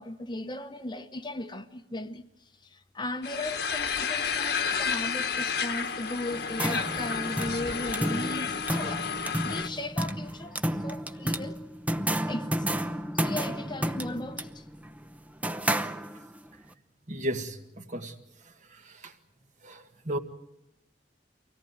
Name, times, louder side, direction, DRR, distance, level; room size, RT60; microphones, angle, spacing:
voice 1, 0.0-2.2 2.6-9.1 9.4-11.6 12.3-12.8 13.1-14.7, left 1 dB, 25° left, 1.0 m, -37 dB
sound 1, 3.2-9.7, left 6 dB, 65° left, 1.5 m, -31 dB
sound 2, 6.3-16.5, right 1 dB, 10° right, 0.8 m, -32 dB
voice 2, 17.1-18.2 18.4-19.1 19.6-20.2, equal, 45° right, 1.7 m, -35 dB
24.5 x 18.0 x 9.5 m
head